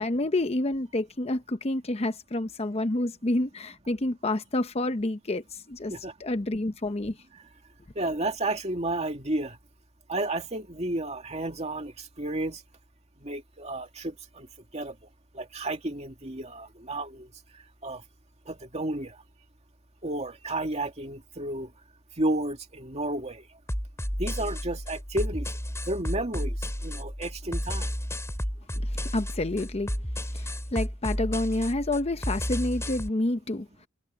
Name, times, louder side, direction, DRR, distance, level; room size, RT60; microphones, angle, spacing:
voice 1, 0.0-5.9 6.2-7.2 28.7-29.9 30.3-33.9, left 1 dB, 30° left, 0.8 m, -29 dB
voice 2, 8.0-9.6 10.1-12.6 13.2-14.5 14.7-15.0 15.3-17.3 17.8-18.0 18.5-19.2 20.0-21.7 22.2-23.5 24.2-25.5 25.9-26.6 26.8-27.9, right 2 dB, 35° right, 2.4 m, -32 dB
sound 1, 23.7-33.1, equal, 15° left, 6.2 m, -32 dB
head